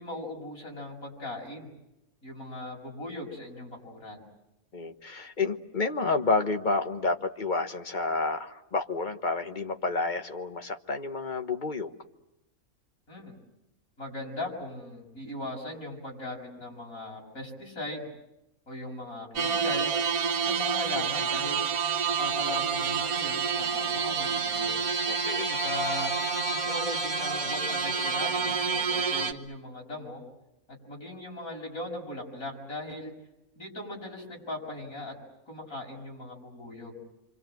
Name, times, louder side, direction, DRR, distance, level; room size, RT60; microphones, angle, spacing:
voice 1, 0.0-1.7 2.2-4.2 13.1-13.3 14.0-18.1 18.7-19.9 20.4-21.6 22.2-24.8 25.5-26.2 26.5-30.2 30.9-33.1 33.6-35.2 35.5-37.0, left 2 dB, 70° left, 0 dB, 7.1 m, -39 dB
voice 2, 4.7-11.9 25.1-25.5, left 3 dB, 35° left, 7 dB, 1.3 m, -30 dB
sound 1, 19.4-29.3, right 5 dB, 80° right, 1.7 m, -28 dB
28.5 x 25.5 x 7.8 m, 0.92 s
omnidirectional pair, 1.5 m